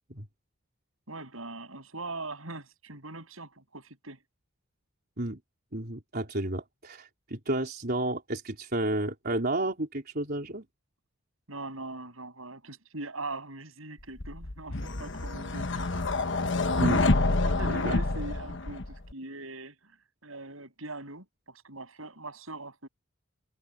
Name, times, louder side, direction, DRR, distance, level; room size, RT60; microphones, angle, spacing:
voice 1, 1.1-4.2 11.5-15.9 17.4-22.9, right 2 dB, 75° right, 7.8 m, -41 dB
voice 2, 5.7-10.7 16.8-17.0 17.6-18.0, right 1 dB, 45° right, 4.1 m, -31 dB
sound 1, 14.2-19.1, left 2 dB, 60° left, 1.2 m, -27 dB
head